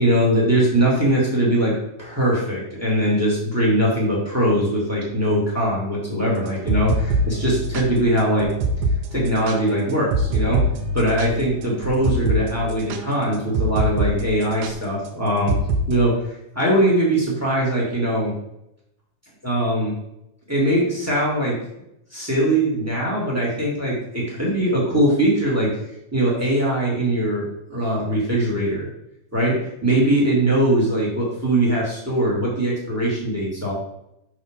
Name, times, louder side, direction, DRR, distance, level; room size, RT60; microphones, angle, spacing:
voice 1, 0.0-8.5 9.1-10.6 10.9-15.5 15.9-16.2 16.5-18.3 19.4-19.9 20.5-21.6 22.1-25.7 26.1-28.9 29.3-33.7, right 1 dB, 5° right, -4 dB, 1.5 m, -21 dB
sound 1, 6.5-14.1 14.4-14.7 15.5-15.9, right 1 dB, 75° right, 1.9 m, -24 dB
6.2 x 6.1 x 3.7 m, 0.81 s
omnidirectional pair, 4.0 m